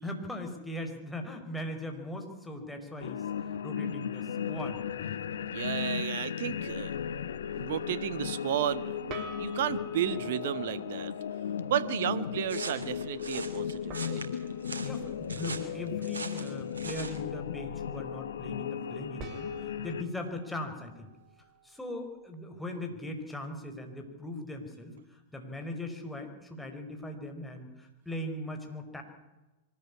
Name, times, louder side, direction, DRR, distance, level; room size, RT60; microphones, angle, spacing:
voice 1, 0.0-5.2 12.3-12.4 14.4-21.1 21.6-29.0, left 1 dB, 5° left, 4 dB, 5.1 m, -40 dB
sound 1, 3.0-20.0, left 8 dB, 70° left, 0.9 m, -36 dB
voice 2, 5.5-6.9 7.5-11.1 11.7-14.2, right 10 dB, 60° right, 15 dB, 1.4 m, -33 dB
sound 2, 9.1-11.5 13.9-16.4 19.2-22.3, right 3 dB, 40° right, 4.1 m, -50 dB
sound 3, 12.5-17.2, right 3 dB, 80° right, 2.9 m, -41 dB
24.0 x 13.5 x 9.8 m, 1.1 s
figure-of-eight pair, 95°, 0 cm